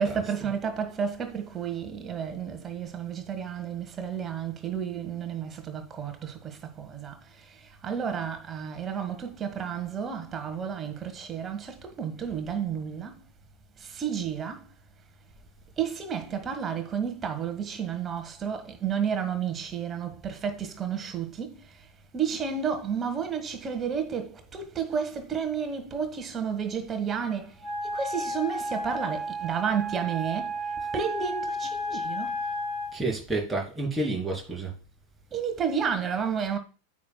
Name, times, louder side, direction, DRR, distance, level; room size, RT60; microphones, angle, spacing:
voice 1, 0.0-13.2 13.8-14.7 15.8-21.8 22.1-30.6 30.9-32.3 35.3-36.6, right 7 dB, 25° right, 1.6 m, -31 dB
Wind instrument woodwind instrument, 27.6-33.0, equal, 30° left, 3.6 m, -32 dB
voice 2, 32.9-34.7, right 2 dB, ahead, 3.5 m, -30 dB
9.3 x 7.4 x 2.3 m
figure-of-eight pair, 90°, 0 cm